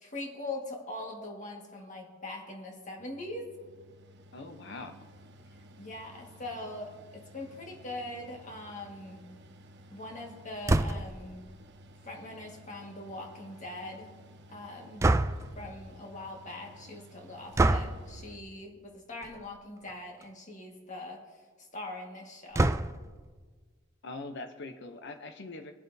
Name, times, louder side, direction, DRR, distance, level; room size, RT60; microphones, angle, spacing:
voice 1, 0.0-3.5 5.8-9.3 9.9-11.4 12.0-14.1 14.5-15.1 15.6-21.2 21.6-22.7, left 2 dB, 40° left, 1 dB, 1.7 m, -42 dB
Mechanical fan, 3.0-18.4, equal, 55° right, 0.8 m, -54 dB
voice 2, 4.3-4.9 24.0-25.7, left 2 dB, 60° left, 6 dB, 0.7 m, -42 dB
sound 1, 10.7-11.2 15.0-15.6 17.5-18.0 19.2-19.5 19.9-20.0 20.2-20.3 22.5-23.1, right 2 dB, 15° right, 0.3 m, -26 dB
23.5 x 7.9 x 2.7 m, 1.5 s
head